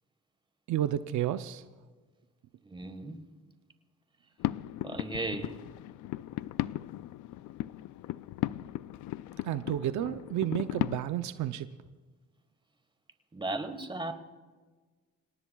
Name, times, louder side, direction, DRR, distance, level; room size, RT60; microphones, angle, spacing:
voice 1, 0.7-1.6 9.4-11.7, right 12 dB, 75° right, 11 dB, 0.6 m, -31 dB
voice 2, 2.6-3.2 4.8-5.6 13.3-14.1, right 2 dB, 15° right, 9 dB, 1.5 m, -36 dB
sound 1, 4.4-11.0, left 15 dB, 80° left, 0.5 m, -36 dB
27.0 x 18.0 x 2.3 m, 1.4 s
cardioid pair, 90°, 30 cm